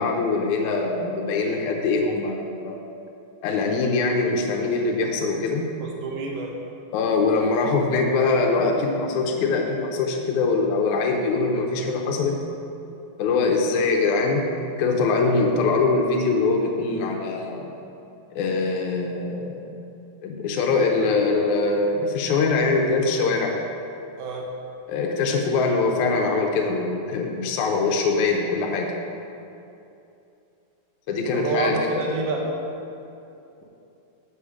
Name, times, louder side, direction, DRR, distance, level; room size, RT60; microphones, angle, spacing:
voice 1, 0.0-2.8 3.4-5.7 6.9-12.4 13.2-14.5 14.8-17.7 18.3-19.6 20.2-23.5 24.9-28.9 31.1-32.0, left 3 dB, 85° left, 1 dB, 1.7 m, -23 dB
voice 2, 5.8-6.6 24.2-24.5 31.3-32.5, right 3 dB, 85° right, 0 dB, 2.9 m, -28 dB
7.2 x 7.1 x 4.9 m, 2.7 s
omnidirectional pair, 4.3 m